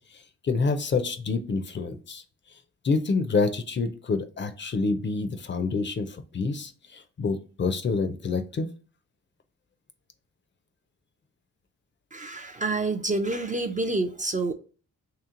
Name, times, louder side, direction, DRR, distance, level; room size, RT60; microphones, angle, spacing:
voice 1, 0.4-2.2 2.8-8.7, left 4 dB, 35° left, 9 dB, 0.5 m, -27 dB
voice 2, 12.1-14.5, right 2 dB, 25° right, 5 dB, 0.4 m, -28 dB
3.2 x 2.9 x 3.6 m, 0.38 s
cardioid pair, 105°, 32 cm